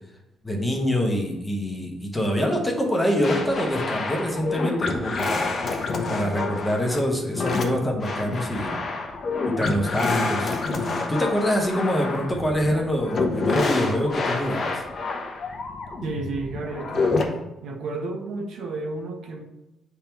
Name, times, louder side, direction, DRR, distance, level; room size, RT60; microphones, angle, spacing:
voice 1, 0.4-5.5 6.1-8.8 9.4-14.8, equal, 10° left, 1 dB, 0.9 m, -25 dB
sound 1, 3.2-17.3, left 3 dB, 35° left, 0.8 m, -28 dB
voice 2, 16.0-17.3 17.6-19.4, right 3 dB, 65° right, 2 dB, 0.8 m, -32 dB
9.1 x 3.5 x 3.0 m, 0.93 s
cardioid pair, 155°, 0 cm